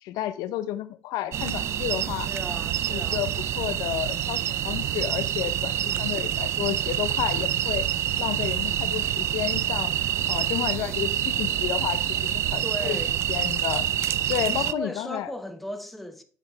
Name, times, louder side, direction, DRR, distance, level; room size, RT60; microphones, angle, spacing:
voice 1, 0.0-2.3 2.9-3.3 3.6-7.9 8.2-10.0 10.3-13.0 13.3-13.9 14.3-15.3, left 13 dB, 75° left, 0.7 m, -31 dB
sound 1, 1.3-14.7, right 11 dB, 45° right, 0.4 m, -27 dB
voice 2, 2.1-3.3 5.7-6.2 10.6-11.0 12.6-13.2 14.4-16.2, equal, ahead, 0.8 m, -37 dB
8.0 x 6.1 x 4.7 m
cardioid pair, 165°, 6 cm